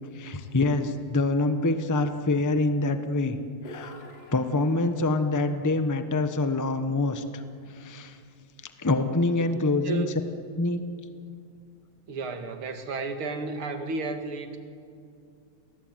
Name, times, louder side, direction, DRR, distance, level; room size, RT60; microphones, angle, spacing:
voice 1, 0.1-3.4 3.6-3.9 4.3-7.4 7.8-8.2 8.8-10.1 10.6-10.8, left 2 dB, 10° left, 8 dB, 0.9 m, -25 dB
sound 1, 3.6-5.2, left 1 dB, 65° left, 4.4 m, -46 dB
voice 2, 12.1-14.6, right 3 dB, 80° right, 6 dB, 2.9 m, -32 dB
30.0 x 19.5 x 9.3 m, 2.5 s
omnidirectional pair, 2.3 m